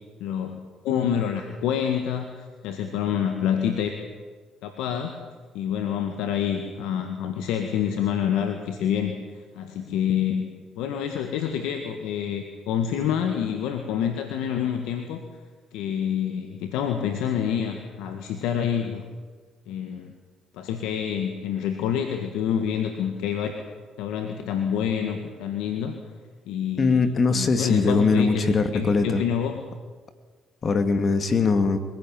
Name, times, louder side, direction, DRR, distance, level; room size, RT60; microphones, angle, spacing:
voice 1, 0.2-0.6 0.8-3.9 4.6-5.1 5.5-9.2 9.6-10.5 10.8-15.2 15.7-19.1 19.7-20.1 20.5-23.5 24.0-26.0 26.5-28.4 28.7-29.6, left 8 dB, 80° left, 5 dB, 1.8 m, -27 dB
voice 2, 26.8-29.2 30.6-31.8, left 4 dB, 45° left, 8 dB, 2.4 m, -21 dB
23.5 x 16.5 x 9.0 m, 1.5 s
supercardioid pair, 70°, 0 cm